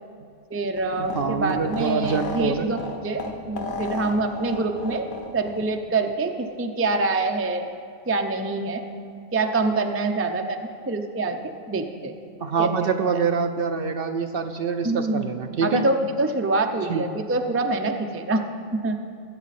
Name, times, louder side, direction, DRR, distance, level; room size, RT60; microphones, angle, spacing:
voice 1, 0.5-5.1 5.3-7.7 8.1-8.8 9.3-12.2 12.6-12.9 14.8-15.3 15.6-18.4 18.7-19.0, right 3 dB, 20° right, 5 dB, 0.3 m, -25 dB
sound 1, 0.7-5.8, left 2 dB, 45° left, 1.1 m, -34 dB
voice 2, 1.1-2.7 12.4-15.9 16.9-17.1, right 6 dB, 60° right, 7 dB, 0.6 m, -25 dB
20.0 x 8.2 x 4.2 m, 2.3 s
omnidirectional pair, 1.3 m